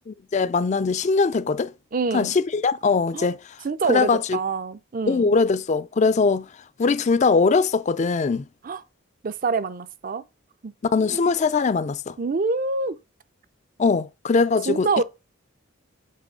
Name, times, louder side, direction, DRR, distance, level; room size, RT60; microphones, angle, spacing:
voice 1, 0.1-1.7 2.1-3.4 3.9-4.4 5.1-6.5 6.8-8.5 10.9-12.1 13.8-15.0, left 4 dB, 35° left, 0.3 m, -21 dB
voice 2, 1.9-2.3 3.1-3.3 3.6-5.3 8.6-8.8 9.2-10.2 10.6-11.2 12.2-13.0 14.7-15.0, right 4 dB, 40° right, 0.5 m, -26 dB
7.5 x 3.1 x 6.1 m
head